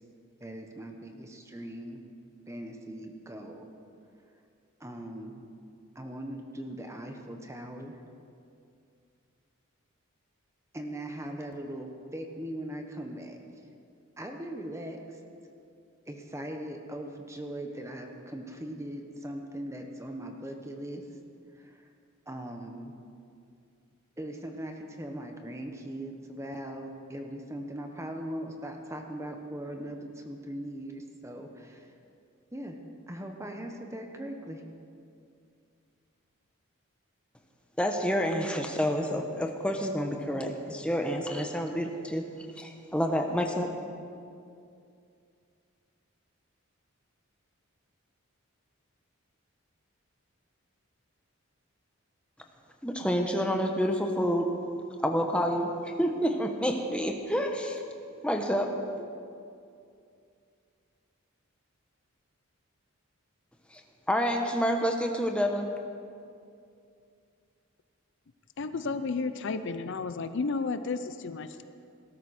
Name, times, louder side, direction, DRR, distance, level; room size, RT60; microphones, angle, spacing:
voice 1, 0.4-2.0 2.5-3.6 4.8-5.4 5.9-8.0 10.7-13.4 14.2-15.2 16.1-21.0 21.5-21.8 22.3-22.9 24.2-31.9 32.5-32.8 33.1-34.6, right 1 dB, 15° right, 4 dB, 1.1 m, -40 dB
voice 2, 37.8-42.2 42.6-43.7 52.8-54.5 55.0-57.8 58.2-59.1 63.7-63.8 64.1-65.7, equal, 5° left, 3 dB, 1.1 m, -28 dB
voice 3, 68.6-71.6, left 4 dB, 60° left, 11 dB, 0.5 m, -32 dB
18.5 x 13.0 x 4.3 m, 2.5 s
head